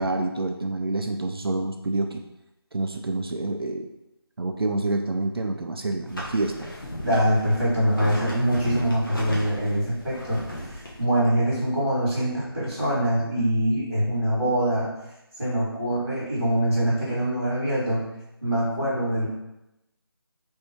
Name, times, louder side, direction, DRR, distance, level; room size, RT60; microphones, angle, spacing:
voice 1, 0.0-2.2 2.7-3.9 4.4-6.7, right 2 dB, 65° right, 4 dB, 0.4 m, -27 dB
sound 1, 6.1-11.0, left 1 dB, 55° left, 1.0 m, -36 dB
voice 2, 7.0-10.4 10.7-14.9 15.4-18.0 18.4-19.3, right 1 dB, ahead, -25 dB, 0.9 m, -24 dB
3.5 x 2.7 x 3.4 m, 0.91 s
figure-of-eight pair, 175°, 13 cm